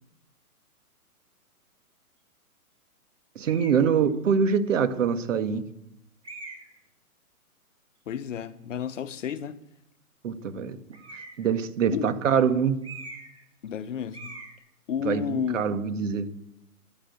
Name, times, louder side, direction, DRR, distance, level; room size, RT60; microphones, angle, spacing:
voice 1, 3.3-5.6 10.2-10.8 11.4-12.7 15.0-16.3, right 6 dB, 55° right, 1.8 m, -24 dB
sound 1, 3.4-3.8 4.7-4.8 6.2-6.8 10.9-11.5 12.8-13.4 13.7-13.8 14.1-14.5, right 3 dB, 10° right, 3.0 m, -42 dB
voice 2, 8.1-9.6 11.9-12.1 13.6-14.4 14.9-15.8, left 8 dB, 55° left, 1.1 m, -32 dB
11.5 x 10.5 x 8.6 m
hypercardioid pair, 140°, 44 cm